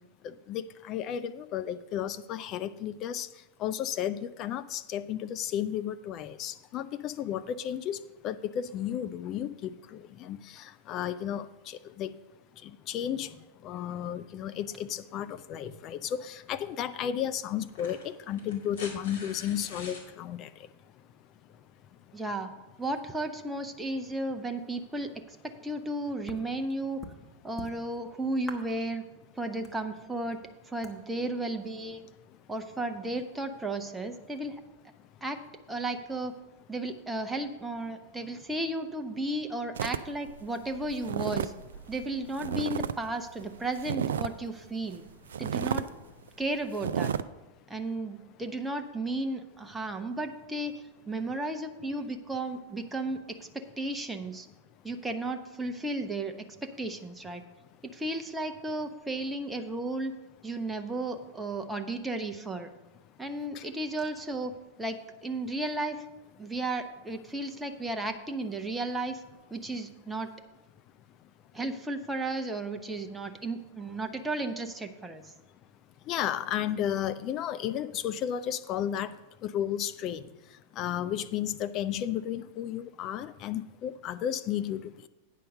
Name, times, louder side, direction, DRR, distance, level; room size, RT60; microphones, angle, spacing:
voice 1, 0.2-3.3 3.6-8.0 8.2-12.1 12.6-13.4 13.6-20.5 63.5-63.7 76.1-79.1 79.4-80.3 80.8-85.1, left 10 dB, 35° left, 12 dB, 0.4 m, -33 dB
sound 1, 16.5-16.6 17.6-20.1 21.6-21.7, left 3 dB, 65° left, 2.3 m, -45 dB
voice 2, 22.1-22.5 22.8-27.0 27.4-29.0 29.4-30.4 30.7-32.0 32.5-34.6 35.2-36.3 36.7-41.5 41.9-45.0 45.4-45.9 46.4-47.1 47.7-54.5 54.8-56.3 56.6-57.4 57.8-60.1 60.4-62.7 63.2-66.0 66.4-69.2 69.5-70.3 71.5-75.3, right 2 dB, 10° right, 6 dB, 0.7 m, -34 dB
sound 2, 26.3-26.5 27.0-27.2 27.6-28.1 28.4-28.9 29.2-29.3 29.6-30.4 30.8-31.0, left 2 dB, 10° left, 1.2 m, -44 dB
sound 3, 39.8-43.0 43.2-44.5 44.9-45.0 45.3-45.9 46.3-46.4 46.7-47.2, right 8 dB, 65° right, 0.3 m, -32 dB
9.1 x 5.6 x 6.4 m, 1.1 s
figure-of-eight pair, 90°, 0 cm